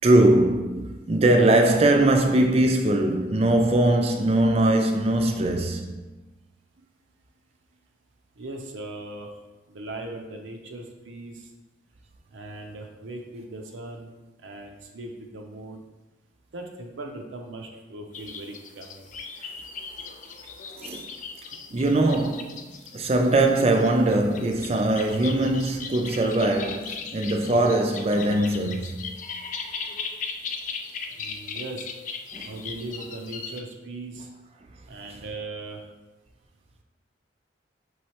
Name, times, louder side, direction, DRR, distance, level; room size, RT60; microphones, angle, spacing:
voice 1, 0.0-5.9 20.8-21.1 21.7-22.7 22.9-29.2 32.3-32.5, right 1 dB, 35° right, 0.4 m, -21 dB
voice 2, 8.4-9.3 9.7-11.5 12.3-14.1 14.4-15.9 16.5-19.1 31.2-31.9 32.4-34.3 34.9-35.9, right 2 dB, 80° right, 0.5 m, -39 dB
sound 1, 18.1-33.6, left 5 dB, 40° left, 0.3 m, -38 dB
5.4 x 3.2 x 2.9 m
head